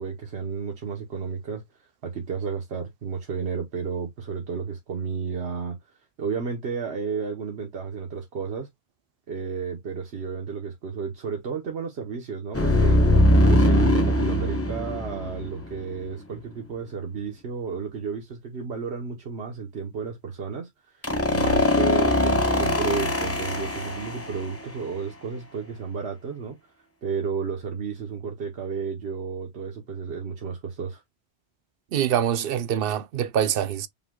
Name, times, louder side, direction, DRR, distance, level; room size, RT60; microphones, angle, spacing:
voice 1, 0.0-1.6 2.0-5.8 6.2-8.7 9.3-13.0 13.5-26.6 27.0-31.0, right 5 dB, 80° right, 1.3 m, -32 dB
sound 1, 12.5-16.0 21.0-24.6, left 1 dB, 15° left, 0.7 m, -21 dB
voice 2, 31.9-33.9, right 9 dB, 65° right, 0.7 m, -24 dB
5.5 x 2.2 x 3.6 m
omnidirectional pair, 1.1 m